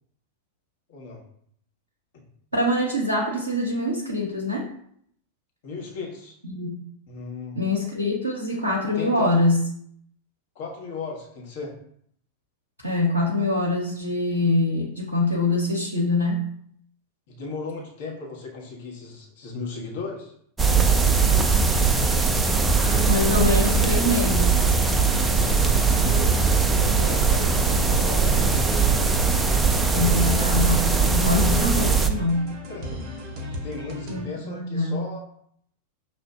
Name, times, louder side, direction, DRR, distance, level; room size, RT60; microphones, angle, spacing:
voice 1, 0.9-1.2 5.6-6.3 7.1-7.6 8.9-9.4 10.5-11.8 17.3-20.3 25.4-29.0 32.7-33.3 33.6-35.3, left 3 dB, 50° left, -2 dB, 1.1 m, -36 dB
voice 2, 2.5-4.7 6.5-6.8 7.6-9.6 12.8-16.4 22.7-24.7 29.9-32.5 34.1-35.0, left 2 dB, 85° right, -2 dB, 0.6 m, -24 dB
sound 1, 20.6-32.1, right 4 dB, 10° right, 0.3 m, -20 dB
sound 2, 22.8-34.2, left 1 dB, 40° right, 0.7 m, -35 dB
5.6 x 2.4 x 2.3 m, 0.67 s
figure-of-eight pair, 90°, 0 cm